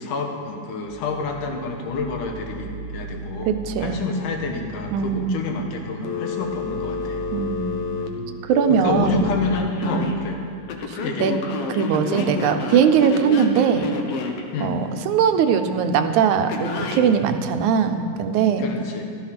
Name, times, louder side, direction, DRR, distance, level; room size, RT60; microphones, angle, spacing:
voice 1, 0.0-7.2 8.1-8.3 8.7-10.4 11.0-11.3 14.5-14.8 18.6-19.1, left 4 dB, 90° left, 3 dB, 2.8 m, -28 dB
sound 1, 0.9-9.7, right 3 dB, 10° left, 2.7 m, -38 dB
voice 2, 3.5-4.1 4.9-5.4 7.3-7.8 8.4-9.2 9.8-10.1 10.9-11.4 11.7-14.0 14.6-18.7, right 7 dB, 75° right, 8 dB, 2.2 m, -21 dB
Telephone, 6.0-8.8 9.5-10.1 10.7-14.4 16.5-17.0, left 4 dB, 60° left, 1.8 m, -29 dB
14.0 x 12.5 x 5.9 m, 2.3 s
omnidirectional pair, 3.5 m